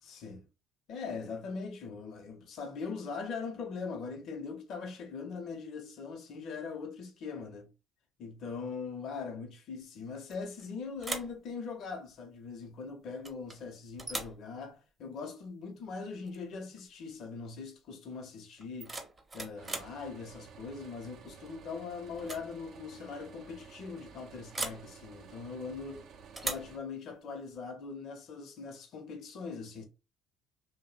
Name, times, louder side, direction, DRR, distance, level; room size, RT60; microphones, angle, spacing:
voice 1, 0.0-0.4 0.9-7.7 8.2-19.0 19.3-26.1 26.4-29.8, left 5 dB, 60° left, 0.6 m, -41 dB
sound 1, 10.3-10.7 11.0-11.4 13.2-13.6 14.0-14.4 16.3-16.4 16.8-17.1 18.6-20.0 21.5-21.8 22.1-22.5 22.7-22.8 24.5-24.9 26.4-26.8, right 2 dB, 25° right, 0.6 m, -39 dB
sound 2, 19.6-26.8, right 6 dB, 60° right, 0.4 m, -53 dB
2.6 x 2.0 x 2.3 m
hypercardioid pair, 65°, 0 cm